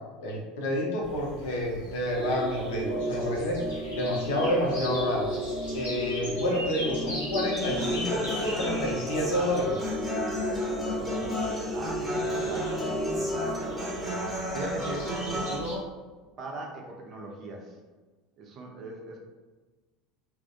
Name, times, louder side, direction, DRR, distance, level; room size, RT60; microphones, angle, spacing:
voice 1, 0.2-3.6 4.0-5.3 5.7-9.8, left 1 dB, 65° left, -2 dB, 0.6 m, -29 dB
sound 1, 1.0-15.7, equal, 80° left, 1.0 m, -40 dB
sound 2, 2.2-14.1, equal, 25° left, 0.6 m, -33 dB
Human voice / Acoustic guitar, 7.6-15.6, left 1 dB, 10° right, 0.7 m, -34 dB
voice 2, 10.4-14.0 14.5-16.0 16.4-17.8 18.4-19.2, right 2 dB, 45° right, 0 dB, 0.5 m, -40 dB
2.3 x 2.0 x 2.6 m, 1.3 s
figure-of-eight pair, 70°, 0 cm